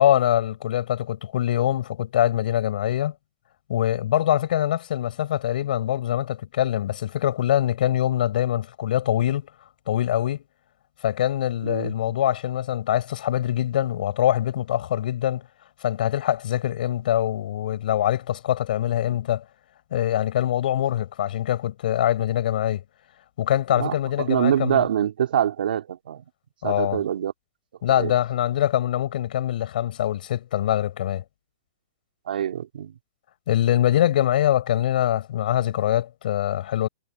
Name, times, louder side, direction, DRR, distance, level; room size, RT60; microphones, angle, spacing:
voice 1, 0.0-3.1 3.7-9.5 9.9-10.4 11.0-15.4 15.8-19.4 19.9-22.8 23.4-24.9 26.6-27.0 27.8-31.2 33.5-36.9, left 12 dB, 65° left, 6.5 m, -23 dB
voice 2, 11.6-11.9 23.8-26.2 26.6-27.3 27.9-28.1 32.3-33.0, right 10 dB, 80° right, 3.2 m, -25 dB
hypercardioid pair, 145°, 5 cm